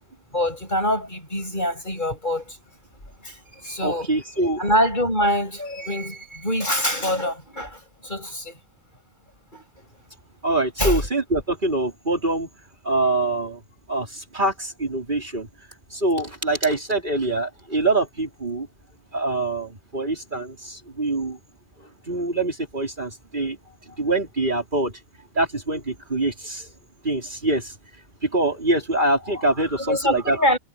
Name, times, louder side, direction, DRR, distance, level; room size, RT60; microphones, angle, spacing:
voice 1, 0.3-2.6 3.2-4.1 4.6-8.6 9.5-9.6 10.8-11.0 29.8-30.6, equal, 40° left, 7.9 m, -24 dB
voice 2, 3.8-4.6 10.4-12.5 12.8-13.6 13.9-15.5 15.9-18.7 19.1-21.4 22.1-23.6 23.9-24.9 25.3-26.7 27.0-27.7 28.2-30.4, right 2 dB, 45° right, 4.6 m, -24 dB
omnidirectional pair, 1.2 m